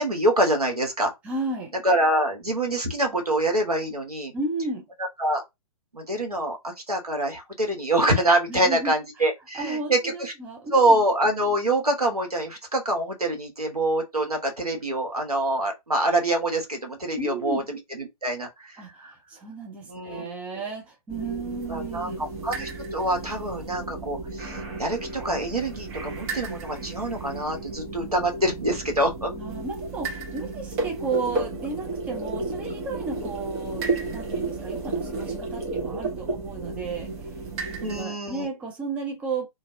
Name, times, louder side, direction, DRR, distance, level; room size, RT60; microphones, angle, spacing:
voice 1, 0.0-1.1 1.8-4.3 5.2-5.4 5.9-10.3 10.7-19.1 19.9-20.5 21.7-24.5 24.8-29.3 37.8-38.5, right 1 dB, 85° right, 1.0 m, -25 dB
voice 2, 1.2-1.7 4.3-4.8 8.5-8.9 9.5-11.0 17.2-17.7 18.8-22.2 29.3-37.1 37.7-39.5, right 3 dB, 5° right, 0.4 m, -33 dB
sound 1, 21.1-38.0, right 3 dB, 25° right, 0.8 m, -33 dB
2.5 x 2.3 x 2.5 m
figure-of-eight pair, 120°, 19 cm